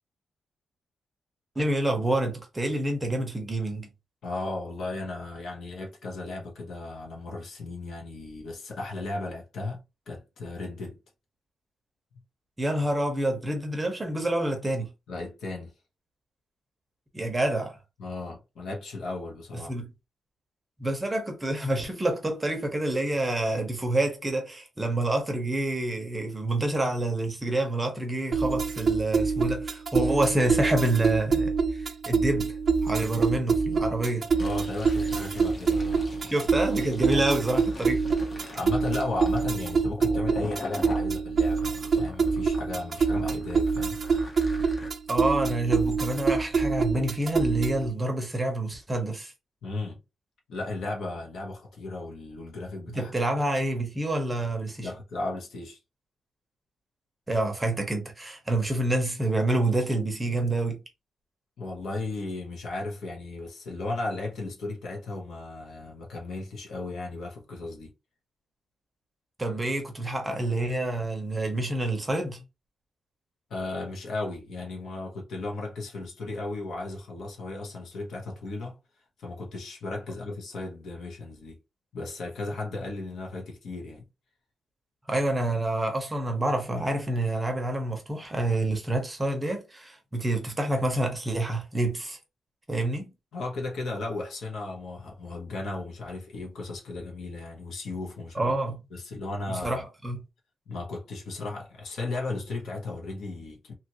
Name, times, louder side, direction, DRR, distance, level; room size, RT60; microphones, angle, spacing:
voice 1, 1.6-3.9 12.6-14.9 17.1-17.8 19.5-19.9 20.8-32.6 32.8-34.3 36.3-38.0 45.1-49.3 52.9-54.9 57.3-60.8 69.4-72.4 85.1-92.2 92.7-93.1 98.4-98.8 99.5-100.2, right 1 dB, 15° right, 0.8 m, -27 dB
voice 2, 4.2-11.0 15.1-15.7 18.0-19.7 34.4-36.1 37.0-37.3 38.5-44.0 49.6-50.0 50.5-53.1 54.8-55.8 61.6-67.9 73.5-78.8 79.2-81.6 81.9-84.1 93.3-98.5 98.9-99.8 100.7-103.7, left 2 dB, 70° left, 1.0 m, -35 dB
sound 1, 28.3-47.9, right 4 dB, 40° right, 0.3 m, -26 dB
Fill (with liquid), 34.2-41.1 41.6-44.9, left 2 dB, 30° left, 0.8 m, -43 dB
2.9 x 2.5 x 2.9 m
wide cardioid pair, 145°, 0 cm